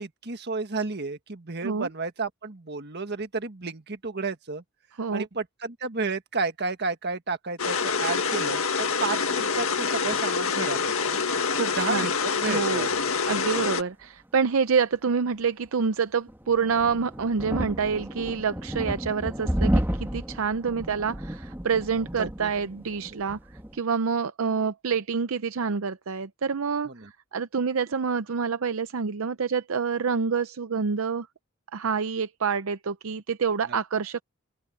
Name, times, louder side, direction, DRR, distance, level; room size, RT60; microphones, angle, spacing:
voice 1, 0.0-4.6 5.1-11.2 11.8-12.9 13.6-13.7 22.2-22.5 26.8-27.1, right 3 dB, 50° right, 1.6 m, -32 dB
sound 1, 7.6-13.8, left 5 dB, 70° left, 1.9 m, -26 dB
voice 2, 11.5-12.1 12.5-12.9 13.3-23.4 23.7-26.9 27.3-31.3 31.7-34.2, right 5 dB, 70° right, 0.6 m, -27 dB
sound 2, 16.3-23.8, equal, 10° right, 1.6 m, -31 dB
open air
head